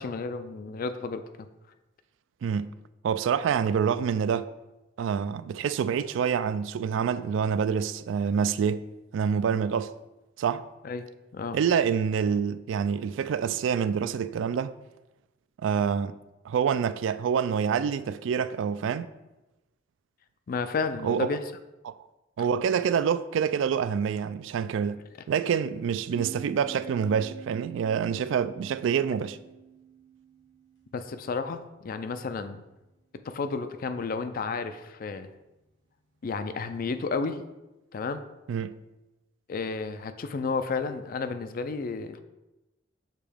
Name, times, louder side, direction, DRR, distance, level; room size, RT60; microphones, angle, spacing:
voice 1, 0.0-1.5 10.8-11.1 11.3-11.6 20.5-21.4 30.9-32.6 33.2-35.3 36.2-37.4 37.9-38.2 39.5-42.2, left 4 dB, 50° left, 0.4 m, -32 dB
voice 2, 3.0-4.5 5.0-8.9 9.1-9.9 10.4-10.7 11.5-14.7 15.6-16.2 16.4-19.1 21.0-21.3 21.9-22.0 22.4-25.0 25.3-29.4 38.5-38.8, right 7 dB, 70° right, 0.3 m, -26 dB
sound 1, 26.1-31.5, right 7 dB, 65° left, 1.5 m, -46 dB
6.7 x 3.0 x 5.0 m
head